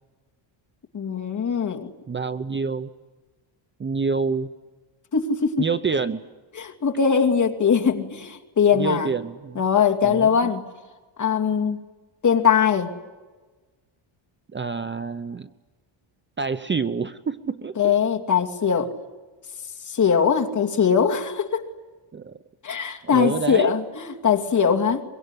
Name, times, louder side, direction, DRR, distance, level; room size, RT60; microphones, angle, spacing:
voice 1, 0.9-1.9 5.1-5.7 6.6-9.1 9.6-10.6 11.2-11.8 12.2-12.9 17.8-18.9 19.9-21.7 22.6-25.0, left 7 dB, 35° left, 2.6 m, -21 dB
voice 2, 2.1-2.9 3.8-4.5 5.6-6.2 8.8-9.6 10.0-10.5 14.5-15.5 16.4-17.9 22.1-22.4 23.0-23.7, right 5 dB, 25° right, 0.8 m, -27 dB
24.0 x 23.0 x 9.9 m
cardioid pair, 130°, 49 cm